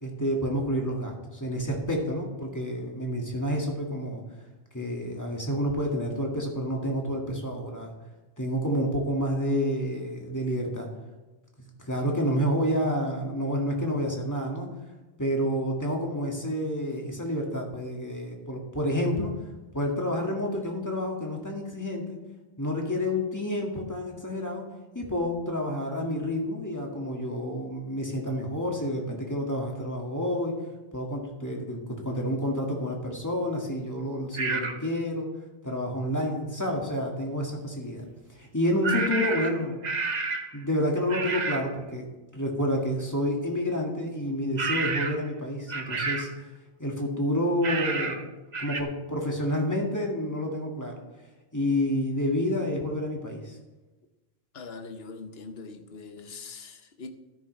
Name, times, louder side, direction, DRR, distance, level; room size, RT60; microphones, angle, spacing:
voice 1, 0.0-4.2 4.7-7.9 8.4-10.9 11.8-14.7 15.2-19.3 19.7-22.2 22.6-24.6 24.9-30.5 30.9-35.3 35.6-38.1 38.4-39.8 40.5-46.3 46.8-48.3 48.6-51.0 51.5-53.6, equal, 15° left, 1.9 m, -29 dB
sound 1, 34.4-34.8 38.8-40.6 41.1-41.7 44.6-45.3 45.7-46.4 47.6-48.2 48.5-48.8, right 4 dB, 45° right, 0.8 m, -30 dB
voice 2, 54.5-57.1, left 4 dB, 60° left, 1.2 m, -42 dB
13.0 x 10.5 x 3.2 m
omnidirectional pair, 1.2 m